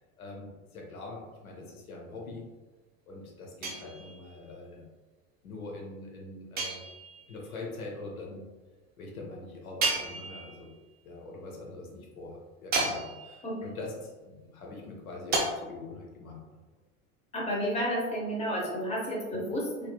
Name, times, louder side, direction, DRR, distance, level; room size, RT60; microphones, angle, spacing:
voice 1, 0.2-2.5 3.1-4.8 5.4-6.8 7.3-8.4 9.0-10.7 11.0-16.6, left 2 dB, 80° left, -1 dB, 0.7 m, -43 dB
sound 1, 3.6-4.4 6.6-7.3 9.8-10.7 12.7-13.5 15.3-15.4, right 3 dB, 25° right, 0.5 m, -32 dB
voice 2, 17.3-19.9, equal, 15° left, -4 dB, 0.7 m, -31 dB
2.6 x 2.5 x 2.3 m, 1.2 s
hypercardioid pair, 85°, 42 cm